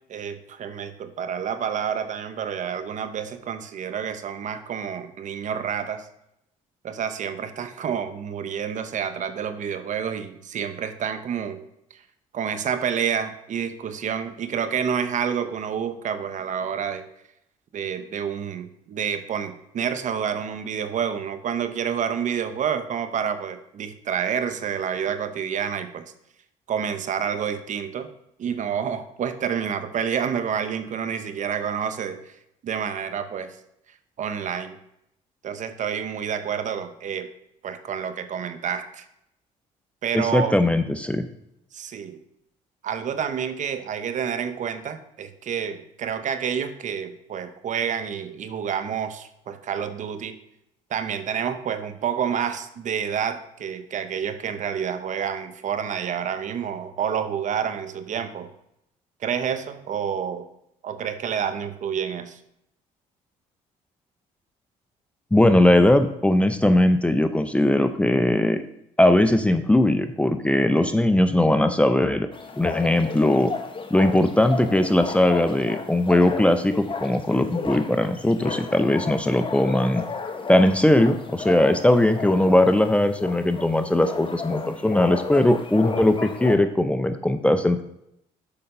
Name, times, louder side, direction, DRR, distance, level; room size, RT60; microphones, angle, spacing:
voice 1, 0.1-6.1 6.8-11.6 11.9-12.0 12.3-17.0 17.7-26.1 26.7-28.1 28.4-32.2 32.6-33.6 34.2-34.8 35.4-37.3 37.6-39.0 40.0-40.6 41.7-42.2 42.8-50.4 50.9-58.5 59.2-60.5 60.8-62.4, right 7 dB, 55° right, 10 dB, 0.8 m, -28 dB
voice 2, 40.1-41.3 65.3-68.6 69.0-72.3 72.6-73.5 73.9-80.1 80.5-87.8, left 1 dB, 10° left, 9 dB, 0.6 m, -19 dB
sound 1, 72.3-86.6, left 4 dB, 35° left, 1.1 m, -33 dB
6.9 x 5.1 x 5.5 m, 0.79 s
supercardioid pair, 80°, 15 cm